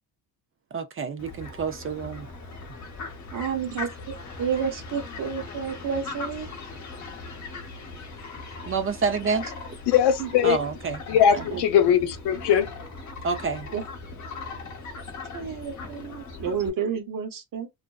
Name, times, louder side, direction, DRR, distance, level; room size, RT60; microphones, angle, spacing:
voice 1, 0.7-2.3 8.7-9.4 10.4-11.0 11.3-11.6 13.2-13.7, right 5 dB, 35° right, 0.4 m, -28 dB
Fowl, 1.2-16.7, left 3 dB, 45° left, 0.9 m, -39 dB
voice 2, 3.3-3.9 4.4-6.5 10.2-10.3 13.7-13.8 15.3-17.7, right 7 dB, 50° right, 0.8 m, -30 dB
voice 3, 9.9-10.6 11.1-12.7, left 9 dB, 80° left, 0.6 m, -20 dB
2.5 x 2.2 x 2.3 m
cardioid pair, 95°, 40 cm